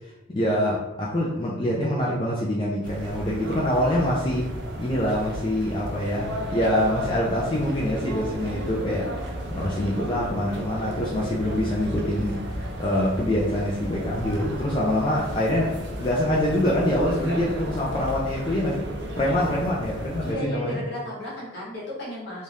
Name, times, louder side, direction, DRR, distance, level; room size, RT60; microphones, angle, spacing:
voice 1, 0.3-4.5 4.8-9.0 9.6-12.4 12.8-15.7 16.0-18.9 19.2-20.8, left 1 dB, 25° left, -5 dB, 0.3 m, -25 dB
sound 1, 2.8-20.3, equal, 55° right, 0.4 m, -34 dB
voice 2, 20.2-22.4, left 1 dB, 55° left, -6 dB, 1.0 m, -34 dB
2.6 x 2.3 x 3.3 m, 1.0 s
head